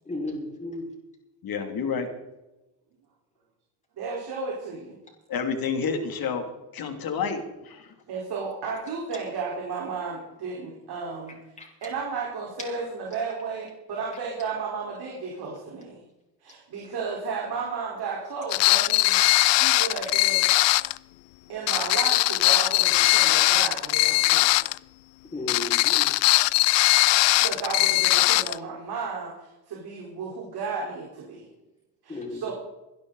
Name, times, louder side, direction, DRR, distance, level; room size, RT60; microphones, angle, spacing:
voice 1, 0.1-0.9 11.6-11.7 25.3-26.1 32.1-32.4, left 2 dB, 15° left, -2 dB, 5.5 m, -34 dB
voice 2, 1.4-2.1 5.3-6.4 6.7-7.9, left 5 dB, 55° left, 5 dB, 2.9 m, -29 dB
voice 3, 4.0-5.0 8.1-11.3 11.8-16.0 16.4-20.4 21.5-24.5 27.4-31.5 32.0-32.5, right 5 dB, 60° right, -3 dB, 4.6 m, -33 dB
sound 1, 18.5-21.0 21.7-24.8 25.5-28.6, left 21 dB, 80° left, 0.5 m, -20 dB
23.0 x 11.5 x 4.1 m, 0.99 s
cardioid pair, 120°, 43 cm